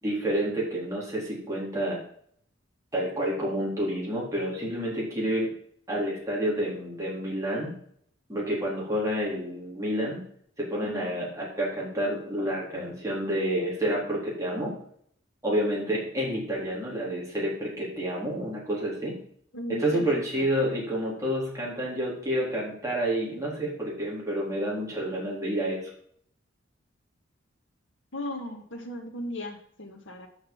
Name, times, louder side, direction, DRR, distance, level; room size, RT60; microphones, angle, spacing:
voice 1, 0.0-2.0 2.9-5.5 5.9-7.7 8.3-10.2 10.6-14.7 15.4-19.1 19.7-25.8, right 1 dB, 15° right, -5 dB, 3.7 m, -29 dB
voice 2, 19.5-20.5 28.1-30.3, left 1 dB, 75° left, 4 dB, 1.9 m, -36 dB
7.6 x 6.6 x 7.4 m, 0.65 s
head